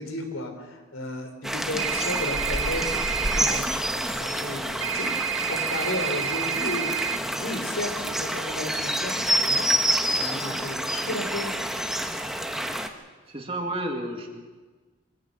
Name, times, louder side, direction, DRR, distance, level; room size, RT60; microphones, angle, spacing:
voice 1, 0.0-6.9 7.3-9.7 10.2-11.5, left 1 dB, 90° left, 6 dB, 3.6 m, -34 dB
sound 1, 1.4-12.9, equal, ahead, 1.1 m, -28 dB
sound 2, 1.8-3.6 4.8-7.2, right 8 dB, 75° right, 1.6 m, -29 dB
voice 2, 13.3-14.3, right 1 dB, 25° right, 3 dB, 2.4 m, -31 dB
24.5 x 16.5 x 6.7 m, 1.3 s
head